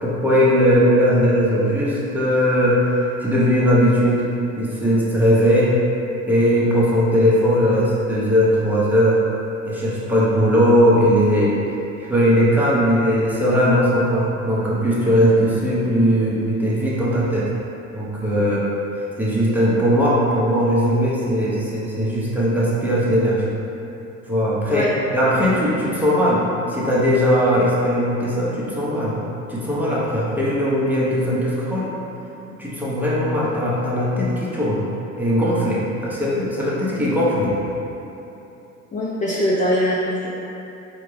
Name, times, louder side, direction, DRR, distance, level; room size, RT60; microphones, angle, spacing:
voice 1, 0.0-4.2 4.6-5.7 6.3-9.2 9.7-11.6 12.0-17.5 17.9-18.6 19.2-23.5 24.3-26.4 26.7-29.1 29.5-31.9 32.6-34.8 35.2-37.5, equal, 5° right, -8 dB, 1.1 m, -19 dB
voice 2, 38.9-40.4, equal, 20° left, -5 dB, 0.5 m, -22 dB
4.3 x 2.5 x 3.3 m, 3.0 s
hypercardioid pair, 70°, 41 cm